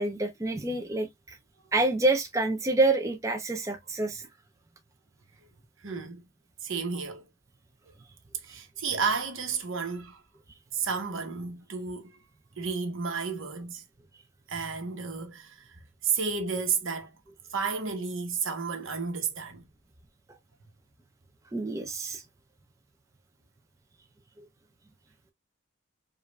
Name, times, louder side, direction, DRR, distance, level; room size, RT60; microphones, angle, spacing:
voice 1, 0.0-1.4 1.7-4.3 8.5-8.6 21.5-22.2 24.4-24.5, right 2 dB, 15° right, 0.4 m, -27 dB
voice 2, 5.8-6.2 6.6-7.2 8.4-10.2 10.7-12.2 12.6-13.8 14.5-15.8 16.0-17.1 17.5-19.7, right 5 dB, 70° right, 1.0 m, -32 dB
5.0 x 2.5 x 2.2 m
head